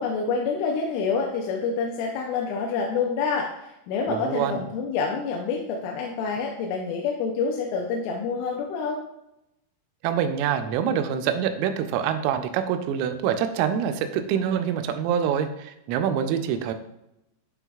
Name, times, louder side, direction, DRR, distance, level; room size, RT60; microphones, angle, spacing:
voice 1, 0.0-9.0, left 5 dB, 80° left, 0 dB, 3.0 m, -27 dB
voice 2, 4.1-4.6 10.0-16.7, right 8 dB, 85° right, 8 dB, 3.1 m, -25 dB
10.5 x 3.9 x 2.3 m, 0.85 s
omnidirectional pair, 5.7 m